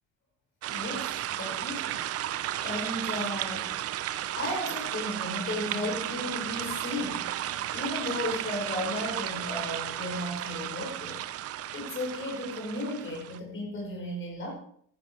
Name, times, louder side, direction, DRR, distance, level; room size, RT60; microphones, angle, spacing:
sound 1, 0.6-13.4, right 12 dB, 50° right, 0.7 m, -34 dB
voice 1, 0.7-2.0 2.6-3.7 4.3-7.3 7.7-11.2 11.7-14.5, left 1 dB, 40° left, 0 dB, 5.4 m, -35 dB
14.0 x 11.5 x 4.7 m, 0.62 s
cardioid pair, 130°, 32 cm